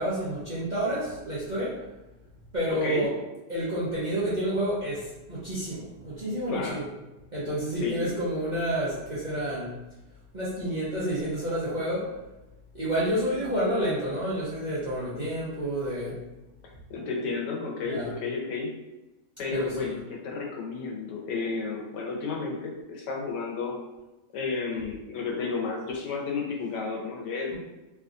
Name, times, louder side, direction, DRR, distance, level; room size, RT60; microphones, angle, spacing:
voice 1, 0.0-1.8 2.5-3.1 3.5-6.9 7.3-9.7 10.3-12.1 12.7-16.2 17.9-18.1 19.5-19.9 27.5-27.6, right 1 dB, 45° right, -9 dB, 0.6 m, -29 dB
voice 2, 2.7-3.0 6.5-6.8 7.8-8.1 16.9-18.8 19.4-23.8 24.3-27.6, left 4 dB, 80° left, -1 dB, 1.3 m, -32 dB
3.4 x 2.8 x 2.4 m, 1.0 s
omnidirectional pair, 1.8 m